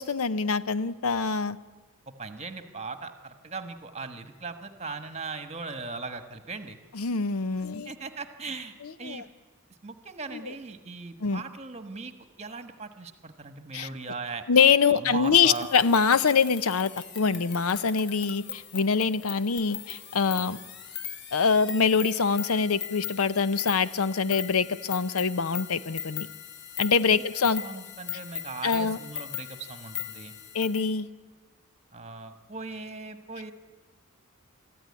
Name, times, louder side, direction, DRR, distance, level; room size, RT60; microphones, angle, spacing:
voice 1, 0.0-1.6 6.9-7.9 8.8-9.3 10.3-10.5 11.2-11.4 13.7-13.9 14.5-20.6 21.3-26.3 26.8-27.6 28.6-29.0 30.5-31.1, left 5 dB, 90° left, 15 dB, 0.7 m, -24 dB
voice 2, 2.1-6.8 7.8-9.2 9.8-12.1 12.4-14.4 14.9-15.7 27.1-27.2 27.6-30.3 31.9-33.5, right 4 dB, 30° right, 9 dB, 1.3 m, -39 dB
sound 1, 15.3-30.9, left 9 dB, 55° left, 1.2 m, -39 dB
23.5 x 14.0 x 9.6 m, 1.3 s
head